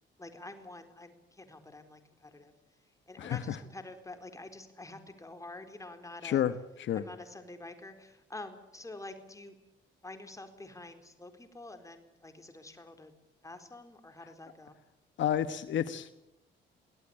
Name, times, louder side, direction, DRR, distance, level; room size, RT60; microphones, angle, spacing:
voice 1, 0.2-2.5 3.1-6.4 6.9-9.5 10.0-13.1 13.4-14.7, left 2 dB, 15° left, 7 dB, 4.0 m, -47 dB
voice 2, 3.2-3.6 6.2-7.1 14.2-14.3 15.2-16.1, left 10 dB, 70° left, 11 dB, 1.2 m, -31 dB
23.5 x 17.0 x 8.8 m, 0.90 s
cardioid pair, 90°, 20 cm